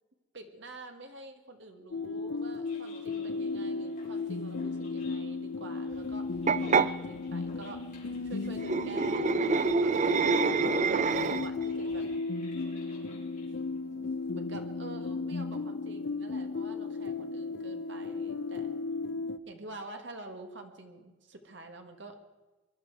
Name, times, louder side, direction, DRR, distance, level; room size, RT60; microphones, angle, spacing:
voice 1, 0.3-6.3 6.6-7.9 8.2-10.9 11.2-12.1 13.9-18.7 19.5-22.2, right 2 dB, 65° right, 5 dB, 1.7 m, -47 dB
sound 1, 1.9-19.4, left 3 dB, 65° left, 0.5 m, -35 dB
sound 2, 2.4-14.6, left 3 dB, 40° left, 3.9 m, -58 dB
sound 3, 6.5-6.9 8.6-11.6, right 4 dB, 35° right, 0.4 m, -26 dB
21.5 x 11.5 x 4.7 m, 1.2 s
head